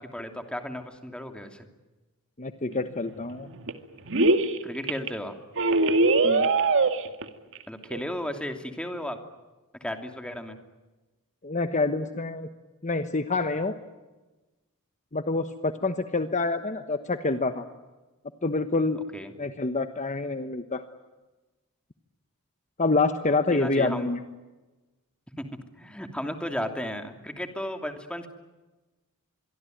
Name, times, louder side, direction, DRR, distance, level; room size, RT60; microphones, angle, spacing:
voice 1, 0.0-1.7 4.6-5.3 7.7-9.2 9.8-10.6 19.1-19.3 23.5-24.1 25.4-25.5 25.8-28.3, left 1 dB, 5° left, 5 dB, 2.8 m, -34 dB
voice 2, 2.4-3.5 6.2-6.5 11.4-12.5 12.8-13.7 15.1-17.6 18.4-19.0 19.4-20.8 22.8-24.2, left 3 dB, 35° left, 9 dB, 1.2 m, -27 dB
sound 1, 2.7-2.8 3.1-3.7 4.1-4.6 4.9-5.1 5.6-7.3 7.6-7.7 7.8-8.0, right 3 dB, 60° right, 2.1 m, -22 dB
26.0 x 23.0 x 9.3 m, 1.1 s
head